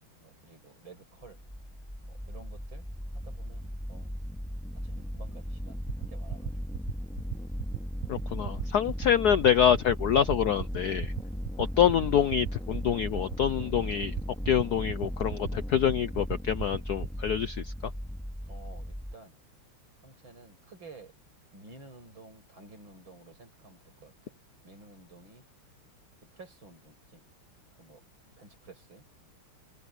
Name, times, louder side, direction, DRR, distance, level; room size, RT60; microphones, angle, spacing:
voice 1, 0.2-1.4 2.0-2.9 3.1-4.1 4.8-5.8 6.1-6.6 18.4-19.4 20.0-21.1 21.5-25.5 26.3-27.2 27.8-28.1 28.4-29.1, right 3 dB, 60° right, 8.7 m, -52 dB
sound 1, 1.2-19.1, equal, ahead, 2.0 m, -37 dB
sound 2, 5.9-17.2, right 14 dB, 75° right, 1.7 m, -36 dB
voice 2, 8.1-11.1 11.6-14.1 14.5-17.6, left 9 dB, 65° left, 1.0 m, -26 dB
omnidirectional pair, 2.4 m